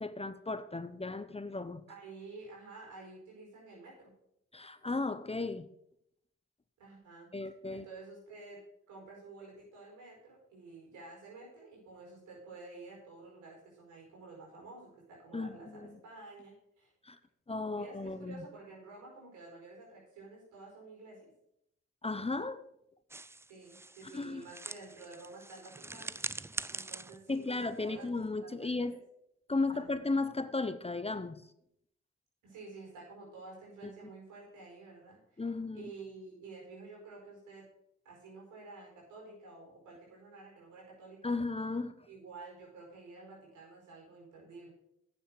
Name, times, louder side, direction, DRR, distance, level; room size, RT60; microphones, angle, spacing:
voice 1, 0.0-1.8 4.5-5.7 7.3-7.8 15.3-16.0 17.0-17.2 17.5-18.4 22.0-22.6 24.1-24.4 27.3-28.9 29.5-31.4 33.8-33.9 35.4-35.9 41.2-42.1, left 3 dB, 20° left, 12 dB, 0.8 m, -35 dB
voice 2, 1.9-4.1 6.8-7.3 7.7-8.6 8.9-16.9 17.5-21.3 23.5-26.2 26.4-28.1 28.4-29.0 29.6-29.9 32.4-35.4 35.7-37.7 38.0-41.3 42.1-44.7, right 3 dB, 90° right, -2 dB, 4.8 m, -51 dB
sound 1, 23.1-28.4, right 2 dB, 10° right, 0.4 m, -44 dB
9.3 x 7.1 x 6.5 m, 0.76 s
supercardioid pair, 45°, 29 cm